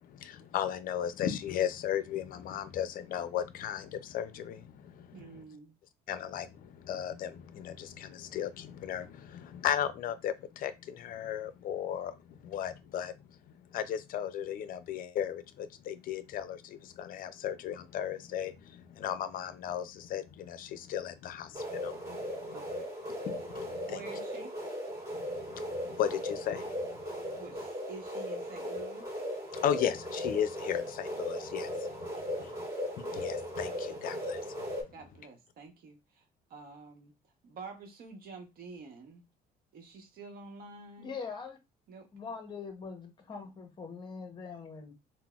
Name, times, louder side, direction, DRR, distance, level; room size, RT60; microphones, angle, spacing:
voice 1, 0.1-5.4 6.1-13.1 13.7-22.5 23.2-24.0 25.1-27.0 29.5-31.9 32.4-32.5 33.0-34.7, left 9 dB, 55° left, 0.4 m, -36 dB
voice 2, 5.1-5.8 22.5-22.9 23.9-24.5 27.4-29.1 32.4-32.6 34.9-37.1 37.4-39.2 39.7-41.2 41.9-42.1, right 4 dB, 60° right, 0.9 m, -48 dB
sound 1, 21.5-34.8, equal, 20° right, 1.8 m, -37 dB
voice 3, 41.0-41.6 42.1-44.9, left 5 dB, 25° left, 0.7 m, -42 dB
3.9 x 2.0 x 2.3 m
cardioid pair, 110°, 17 cm